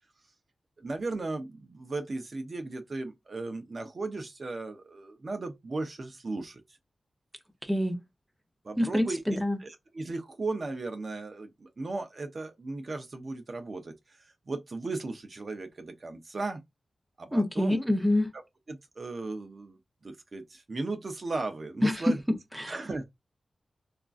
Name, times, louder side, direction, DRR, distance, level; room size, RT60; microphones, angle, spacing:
voice 1, 0.8-6.6 8.6-16.6 17.2-17.8 18.7-19.8 20.0-22.2 22.7-23.1, right 3 dB, 45° right, 0.6 m, -36 dB
voice 2, 7.6-8.0 8.8-9.6 17.3-18.3 21.8-22.8, left 1 dB, ahead, 0.7 m, -27 dB
3.6 x 2.4 x 2.4 m
wide cardioid pair, 100°, 0 cm